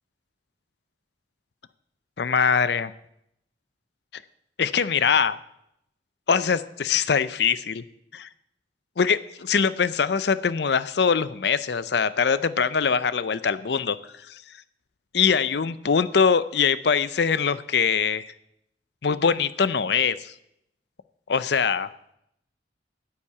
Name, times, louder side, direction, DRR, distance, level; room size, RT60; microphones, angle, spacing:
voice 1, 2.2-2.9 4.6-5.4 6.3-7.8 8.1-8.3 9.0-14.0 14.3-14.4 15.1-18.3 19.0-20.3 21.3-21.9, left 6 dB, 65° left, 15 dB, 0.5 m, -23 dB
9.6 x 7.2 x 8.4 m, 0.79 s
head